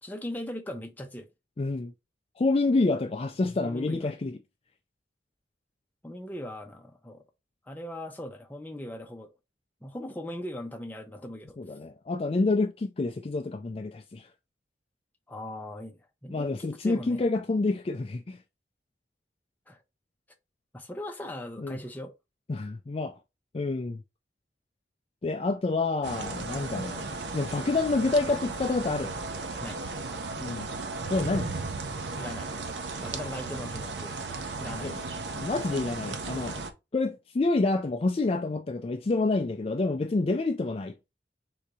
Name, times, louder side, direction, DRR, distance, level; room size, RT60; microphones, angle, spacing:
voice 1, 0.0-1.3 3.6-4.1 6.0-7.2 7.7-9.3 9.8-11.6 15.3-17.2 19.7-19.8 20.7-22.1 29.6-29.8 32.2-32.5 33.0-34.3 34.6-34.9, left 1 dB, 10° left, 0.7 m, -39 dB
voice 2, 1.6-1.9 2.4-4.4 11.6-14.3 16.3-18.4 21.6-21.8 22.5-23.1 23.5-24.0 25.2-27.1 27.3-29.1 30.4-30.6 31.1-31.5 33.0-33.1 34.8-35.0 35.3-36.6 36.9-40.9, left 3 dB, 35° left, 0.4 m, -28 dB
sound 1, 26.0-36.7, right 3 dB, 75° right, 0.7 m, -35 dB
3.9 x 2.8 x 4.7 m
head